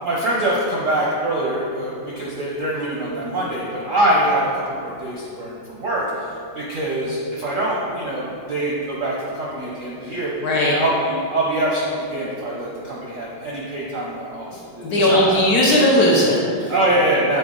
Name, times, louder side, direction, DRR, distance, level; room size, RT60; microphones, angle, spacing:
voice 1, 0.0-10.3 10.6-15.4 16.7-17.4, right 1 dB, 65° right, -4 dB, 0.7 m, -24 dB
voice 2, 10.4-10.8 14.8-16.7, left 1 dB, 65° left, -4 dB, 1.0 m, -17 dB
6.9 x 4.2 x 3.7 m, 2.5 s
omnidirectional pair, 2.2 m